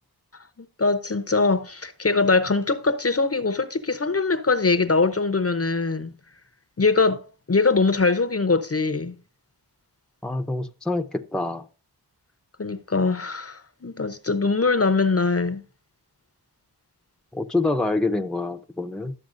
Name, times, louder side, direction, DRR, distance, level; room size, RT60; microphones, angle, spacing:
voice 1, 0.6-6.1 6.8-9.2 12.6-15.6, left 3 dB, 35° left, 0.7 m, -22 dB
voice 2, 10.2-11.7 17.3-19.1, left 2 dB, ahead, 0.7 m, -26 dB
12.0 x 7.0 x 2.5 m
wide cardioid pair, 60°, 40 cm